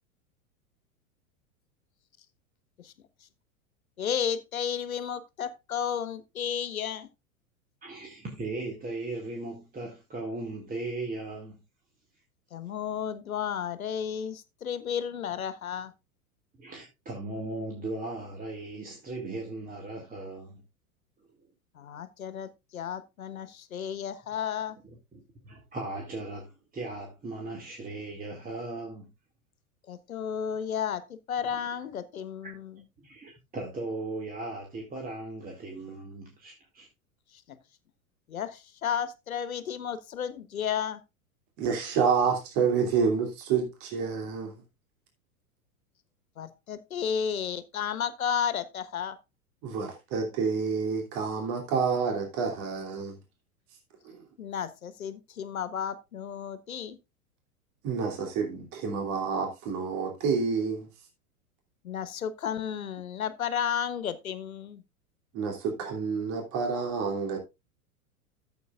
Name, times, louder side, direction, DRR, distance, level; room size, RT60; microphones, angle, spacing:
voice 1, 4.0-7.1 12.5-15.9 21.7-24.8 29.9-32.7 37.5-37.6 38.3-41.0 46.4-49.2 54.4-57.0 61.8-64.8, left 8 dB, 75° left, 1.3 m, -33 dB
voice 2, 7.8-11.6 16.6-20.6 24.8-29.1 32.4-32.5 33.0-36.9, right 2 dB, 20° right, 2.3 m, -38 dB
voice 3, 41.6-44.5 49.6-53.2 54.0-54.2 57.8-60.9 65.3-67.4, right 5 dB, 45° right, 2.9 m, -28 dB
13.5 x 7.9 x 2.4 m
figure-of-eight pair, 95°, 43 cm